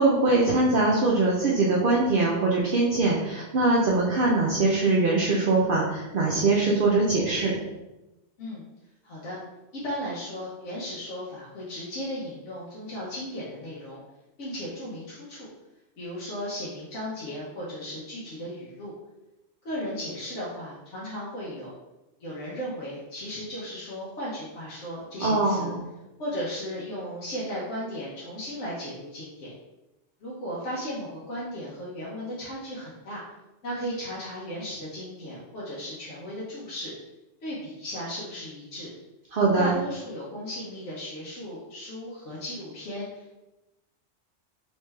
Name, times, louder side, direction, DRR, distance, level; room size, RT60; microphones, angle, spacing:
voice 1, 0.0-7.6 25.2-25.8 39.3-39.7, right 3 dB, 60° right, -4 dB, 0.7 m, -22 dB
voice 2, 9.0-9.4 9.7-14.0 14.4-15.5 16.0-18.9 19.6-21.7 22.2-25.7 26.2-29.5 30.2-33.2 33.6-36.9 37.4-38.9 39.6-43.4, equal, 85° left, -7 dB, 1.2 m, -36 dB
3.4 x 3.1 x 3.2 m, 1.0 s
omnidirectional pair, 1.2 m